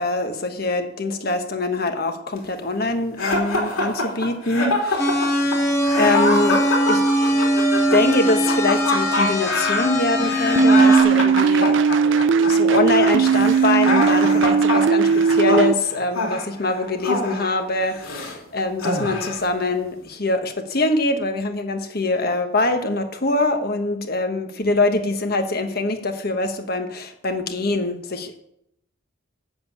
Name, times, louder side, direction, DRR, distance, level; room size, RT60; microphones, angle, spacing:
voice 1, 0.0-5.3 5.9-6.6 6.9-7.0 7.9-28.4, left 2 dB, 45° left, 6 dB, 1.2 m, -24 dB
sound 1, 3.2-18.4 18.8-19.5, left 2 dB, 85° left, 3.1 m, -25 dB
sound 2, 5.0-11.0, equal, 15° left, 1.5 m, -21 dB
sound 3, 10.6-15.7, right 6 dB, 60° right, 0.3 m, -18 dB
8.1 x 7.8 x 8.4 m, 0.77 s
head